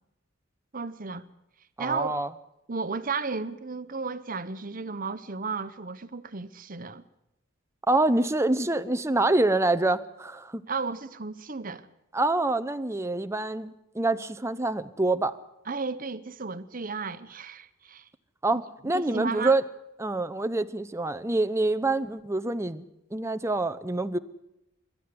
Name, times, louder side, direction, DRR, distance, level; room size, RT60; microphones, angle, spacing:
voice 1, 0.7-1.3 1.8-2.2 2.7-7.0 10.7-11.9 15.7-18.1 18.9-19.6, right 4 dB, 45° right, 1.0 m, -33 dB
voice 2, 1.8-2.3 7.9-10.6 12.1-15.4 18.4-19.6 20.0-22.9 23.1-24.2, right 2 dB, 15° right, 0.7 m, -26 dB
25.0 x 13.0 x 9.6 m
head